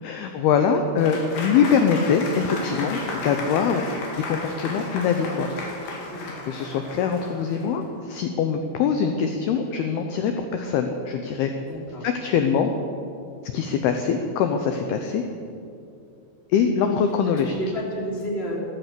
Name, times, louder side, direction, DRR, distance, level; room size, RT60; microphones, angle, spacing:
voice 1, 0.0-5.5 6.5-11.5 12.0-12.7 13.5-15.2 16.5-17.6, left 6 dB, 80° left, 6 dB, 2.3 m, -23 dB
Applause / Crowd, 1.0-7.8, left 2 dB, 60° left, 3.9 m, -34 dB
voice 2, 11.6-12.1 12.4-12.5 16.8-16.9 17.4-18.6, equal, 15° left, -3 dB, 2.3 m, -32 dB
14.5 x 14.5 x 6.8 m, 2.6 s
omnidirectional pair, 5.5 m